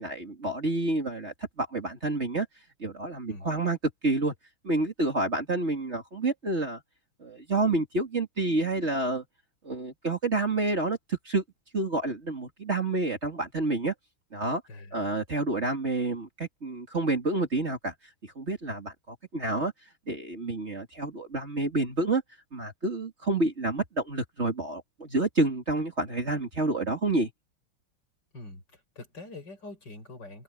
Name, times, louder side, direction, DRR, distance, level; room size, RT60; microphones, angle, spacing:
voice 1, 0.0-2.5 2.8-4.3 4.6-6.8 7.2-9.2 9.6-11.4 11.7-13.9 14.3-14.6 14.9-17.9 18.4-19.7 20.1-22.2 22.5-27.3, right 2 dB, 30° right, 2.9 m, -29 dB
voice 2, 14.7-15.0 28.3-30.4, left 2 dB, 55° left, 6.0 m, -44 dB
omnidirectional pair, 2.3 m